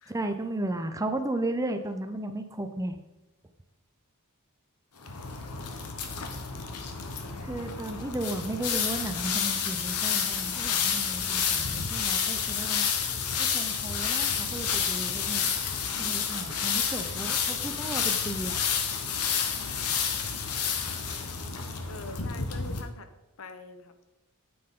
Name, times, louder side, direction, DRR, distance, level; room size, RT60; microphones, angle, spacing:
voice 1, 0.1-3.0 7.4-12.9 13.4-15.5 16.0-18.6, right 1 dB, 15° right, 7 dB, 0.6 m, -34 dB
sound 1, 5.0-22.8, left 7 dB, 85° left, 1.1 m, -30 dB
voice 2, 6.2-7.0 14.3-14.5 21.9-23.1 23.4-23.9, left 3 dB, 65° left, 9 dB, 0.9 m, -45 dB
9.7 x 8.6 x 3.8 m, 0.98 s
head